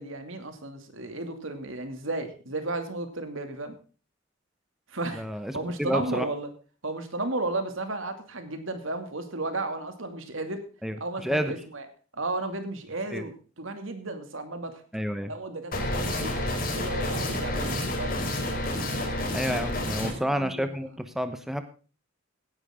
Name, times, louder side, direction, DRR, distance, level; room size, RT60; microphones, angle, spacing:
voice 1, 0.0-3.7 4.9-5.2 5.5-6.5 6.8-10.6 11.0-11.9 12.1-14.8 15.3-18.2 20.0-20.7, right 2 dB, 70° right, 7 dB, 2.5 m, -34 dB
voice 2, 5.1-6.3 10.8-11.5 13.1-13.2 14.9-15.3 19.3-21.6, equal, ahead, 8 dB, 1.0 m, -30 dB
sound 1, 15.7-20.1, left 1 dB, 45° left, 4.6 m, -29 dB
17.0 x 10.5 x 3.7 m, 0.36 s
head